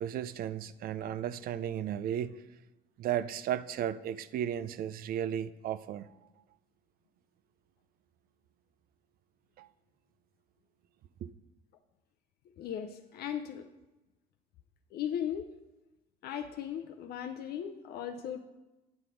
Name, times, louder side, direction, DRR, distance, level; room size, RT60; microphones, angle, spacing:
voice 1, 0.0-2.4 3.0-6.1 9.6-9.7 11.2-11.3, right 10 dB, 60° right, 16 dB, 0.4 m, -34 dB
voice 2, 12.6-13.7 14.9-15.5 16.2-18.4, left 9 dB, 70° left, 6 dB, 0.6 m, -37 dB
9.6 x 5.9 x 4.9 m, 1.0 s
cardioid pair, 110°, 17 cm